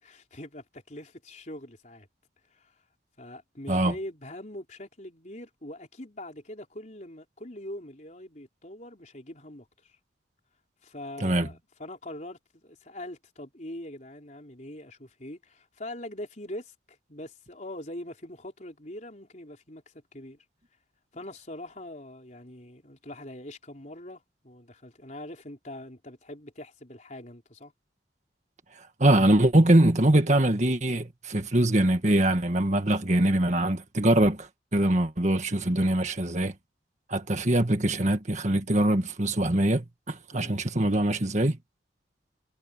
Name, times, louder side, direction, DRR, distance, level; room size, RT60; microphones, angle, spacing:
voice 1, 0.0-2.1 2.5-2.8 3.2-10.0 10.8-20.4 21.1-27.7 40.3-40.6, left 1 dB, 40° left, 4.4 m, -43 dB
voice 2, 29.0-36.5 37.1-41.6, right 1 dB, 40° right, 1.8 m, -23 dB
head